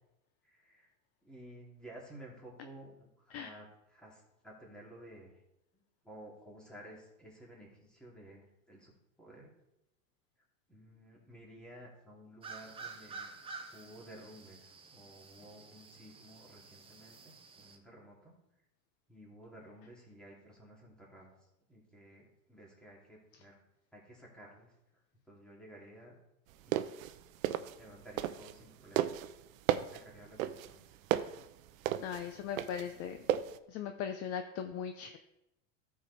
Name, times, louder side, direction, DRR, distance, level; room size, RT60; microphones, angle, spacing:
voice 1, 0.4-0.9 1.2-5.3 5.7-8.9 9.2-9.5 10.7-13.3 13.7-18.4 19.1-23.5 23.9-26.2 26.6-27.2 27.8-29.1 29.8-31.0, right 1 dB, ahead, -4 dB, 2.5 m, -54 dB
sound 1, 12.4-17.8, right 4 dB, 15° right, 0.7 m, -50 dB
sound 2, 26.5-28.6 29.0-33.6, right 12 dB, 80° right, 0.7 m, -33 dB
voice 2, 32.0-33.2 33.7-35.2, left 8 dB, 35° left, 7 dB, 0.6 m, -39 dB
13.5 x 4.8 x 4.0 m, 0.88 s
supercardioid pair, 135°, 40 cm